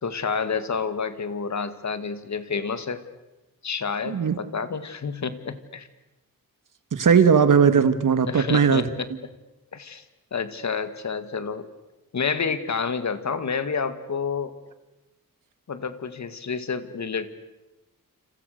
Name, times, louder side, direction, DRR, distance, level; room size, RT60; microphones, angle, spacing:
voice 1, 0.0-3.0 3.6-5.9 8.2-9.1 9.7-10.0 10.3-11.7 12.1-14.5 15.7-17.3, left 5 dB, 55° left, 11 dB, 2.0 m, -29 dB
voice 2, 6.9-8.8, right 6 dB, 65° right, 11 dB, 1.9 m, -18 dB
29.5 x 28.0 x 6.7 m, 1.0 s
wide cardioid pair, 135°, 34 cm